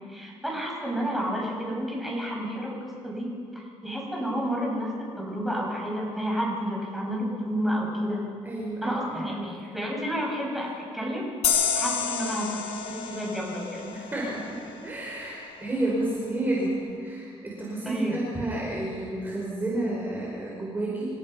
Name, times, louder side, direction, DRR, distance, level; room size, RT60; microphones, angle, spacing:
voice 1, 0.1-3.3 3.5-4.9 5.2-8.2 8.8-11.2 11.5-13.9 17.9-18.3, equal, ahead, -3 dB, 7.5 m, -30 dB
voice 2, 8.4-9.5 13.9-21.2, right 1 dB, 20° right, -5 dB, 5.2 m, -31 dB
sound 1, 11.4-14.8, left 7 dB, 85° left, 2.8 m, -29 dB
28.0 x 17.0 x 5.8 m, 2.2 s
cardioid pair, 110°, 11 cm